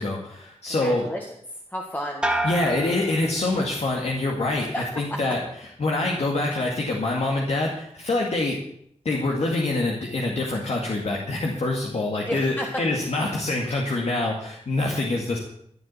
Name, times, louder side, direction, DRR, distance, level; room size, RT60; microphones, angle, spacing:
voice 1, 0.0-1.0 2.4-5.4 5.8-8.6 9.0-15.4, left 2 dB, 70° left, -1 dB, 2.2 m, -25 dB
voice 2, 0.7-2.2 4.6-4.8 5.1-5.2 12.2-12.8, equal, 15° left, 0 dB, 1.8 m, -32 dB
sound 1, 2.2-4.0 4.4-4.9, right 1 dB, 10° right, 1.8 m, -30 dB
14.0 x 7.3 x 8.4 m, 0.70 s
wide cardioid pair, 90°, 11 cm